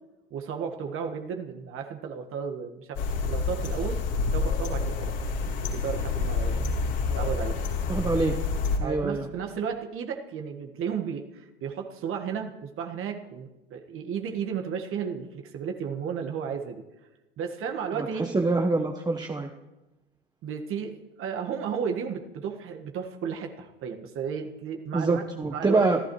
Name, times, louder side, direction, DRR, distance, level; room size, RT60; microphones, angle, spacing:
voice 1, 0.3-4.0 4.3-5.1 5.6-6.8 7.2-7.6 8.8-16.8 17.4-18.3 20.4-25.2 25.5-25.9, right 7 dB, 45° right, 4 dB, 1.7 m, -33 dB
sound 1, 2.9-8.8, left 4 dB, 55° left, 3.5 m, -28 dB
voice 2, 7.9-8.4 8.8-9.2 17.9-19.5 24.9-26.0, right 3 dB, 15° right, 4 dB, 1.2 m, -25 dB
27.0 x 14.5 x 3.2 m, 1.0 s
hypercardioid pair, 80°, 31 cm